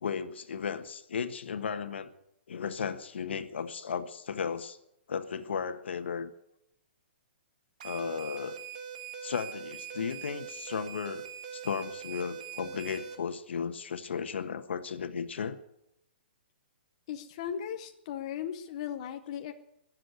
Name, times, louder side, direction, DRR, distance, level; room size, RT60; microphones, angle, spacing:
voice 1, 0.0-2.1 2.5-4.8 5.1-6.3 7.8-8.6 9.2-15.6, left 6 dB, 80° left, 9 dB, 1.4 m, -35 dB
sound 1, 7.8-13.1, right 8 dB, 40° right, 1.6 m, -42 dB
voice 2, 17.1-19.5, left 9 dB, 30° left, 6 dB, 0.8 m, -37 dB
18.5 x 7.6 x 9.5 m, 0.82 s
hypercardioid pair, 175°, 6 cm